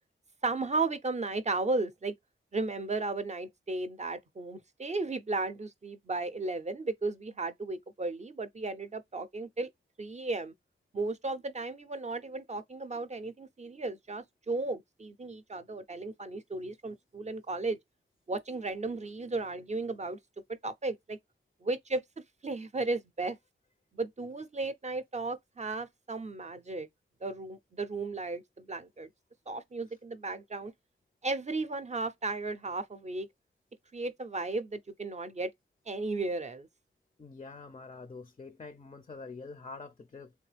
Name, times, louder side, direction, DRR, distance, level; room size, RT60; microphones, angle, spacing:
voice 1, 0.4-2.1 2.5-9.7 10.0-10.5 10.9-17.8 18.3-20.2 20.5-21.2 21.6-22.0 22.4-23.4 23.9-26.9 27.2-29.1 29.5-30.7 31.2-33.3 33.9-35.5 35.9-36.7, right 3 dB, 35° right, 0.5 m, -35 dB
voice 2, 37.2-40.3, left 4 dB, 30° left, 0.4 m, -46 dB
3.3 x 3.0 x 3.3 m
wide cardioid pair, 125°, 21 cm